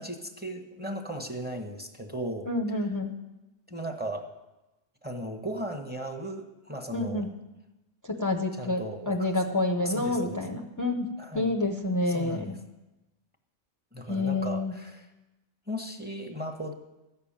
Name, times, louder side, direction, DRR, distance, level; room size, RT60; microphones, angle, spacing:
voice 1, 0.0-2.5 3.7-4.3 5.0-7.2 8.6-9.3 9.8-10.4 11.2-11.5 12.1-12.5 13.9-15.1 15.7-16.7, right 1 dB, 10° right, 4 dB, 1.0 m, -36 dB
voice 2, 2.5-3.1 6.9-7.3 8.0-12.5 14.1-14.7, left 2 dB, 20° left, 2 dB, 0.7 m, -28 dB
13.5 x 6.8 x 8.7 m, 1.0 s
omnidirectional pair, 1.1 m